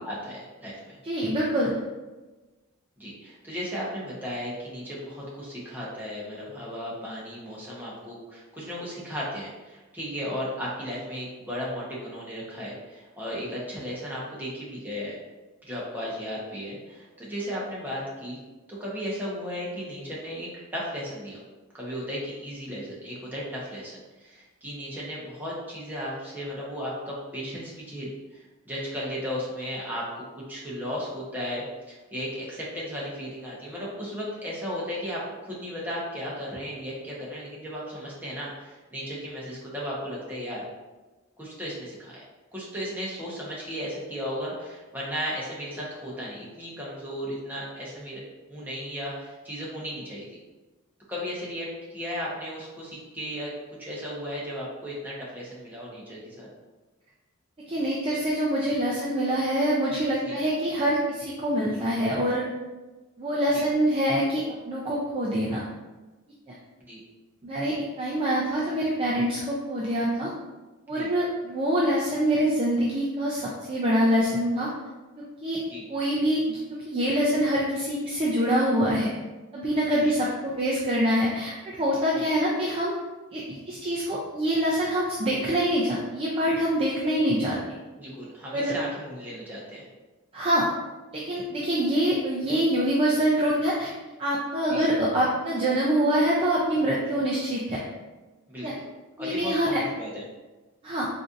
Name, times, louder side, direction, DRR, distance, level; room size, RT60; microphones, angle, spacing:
voice 1, 0.0-1.0 3.0-15.2 15.7-18.4 18.7-21.4 21.7-40.6 41.4-42.1 42.5-48.2 48.5-50.4 51.1-53.5 53.8-56.5 60.3-60.4 63.5-63.7 66.8-67.0 70.9-71.1 75.7-75.8 80.0-80.5 82.2-82.3 88.0-89.8 94.7-94.9 98.5-98.8 99.2-100.2, equal, 10° right, -6 dB, 0.8 m, -35 dB
voice 2, 1.0-1.8 57.7-62.4 63.2-65.6 66.5-66.6 67.4-70.3 70.9-74.7 75.4-75.6 75.9-79.1 79.5-83.0 83.3-87.6 88.5-88.7 90.3-90.7 91.1-93.9 94.2-97.8 98.6-98.7 99.2-99.8 100.8-101.1, equal, 25° right, -6 dB, 0.4 m, -25 dB
4.0 x 2.6 x 2.4 m, 1.2 s
head